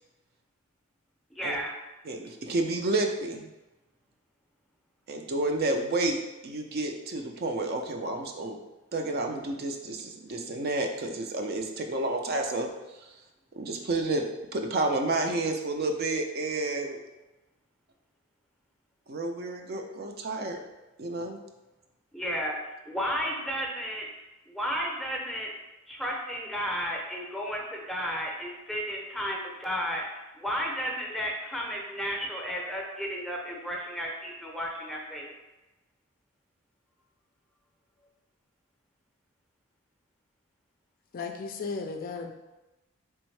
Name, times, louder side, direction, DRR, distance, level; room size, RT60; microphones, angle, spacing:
voice 1, 1.3-1.7 22.1-22.6 22.9-24.1 24.5-25.5 25.9-35.3, equal, ahead, -1 dB, 0.6 m, -33 dB
voice 2, 2.0-3.5 5.1-6.2 6.4-8.6 8.9-12.7 13.0-13.1 13.6-17.0 19.1-20.6 21.0-21.4, right 2 dB, 50° right, 4 dB, 0.4 m, -30 dB
voice 3, 41.1-42.3, left 4 dB, 45° left, 4 dB, 0.3 m, -35 dB
3.5 x 3.4 x 3.2 m, 1.1 s
head